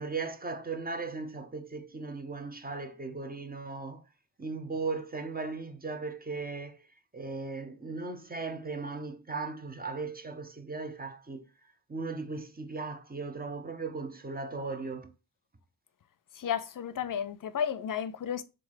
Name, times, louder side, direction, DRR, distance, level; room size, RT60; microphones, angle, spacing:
voice 1, 0.0-4.0 4.4-6.8 7.1-11.5 11.9-15.1, right 4 dB, 20° right, 0.8 m, -37 dB
voice 2, 16.3-18.4, left 8 dB, 55° left, 0.6 m, -33 dB
3.8 x 2.5 x 4.6 m
cardioid pair, 50°, 41 cm